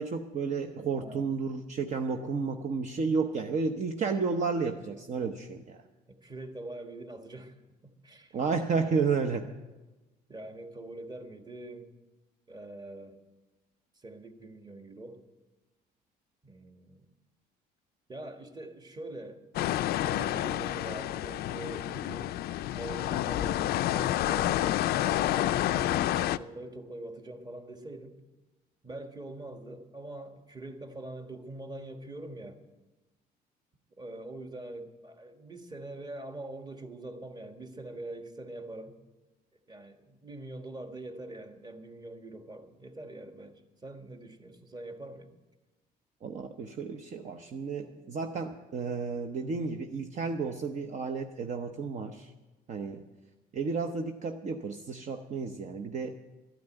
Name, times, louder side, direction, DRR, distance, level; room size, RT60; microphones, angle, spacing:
voice 1, 0.0-5.8 8.3-9.5 46.2-52.3 52.7-53.1 53.5-56.1, right 5 dB, 45° right, 4 dB, 0.9 m, -32 dB
voice 2, 0.9-1.3 6.1-7.6 7.8-8.3 8.8-9.0 10.3-11.9 12.5-13.2 13.9-15.2 16.4-17.0 18.1-19.4 19.8-22.4 22.7-28.1 28.8-32.6 34.0-38.9 39.7-45.3, right 2 dB, 25° right, 6 dB, 1.6 m, -44 dB
sound 1, 19.5-26.4, left 14 dB, 65° left, 0.4 m, -29 dB
13.0 x 9.4 x 9.0 m, 1.1 s
cardioid pair, 110°, 17 cm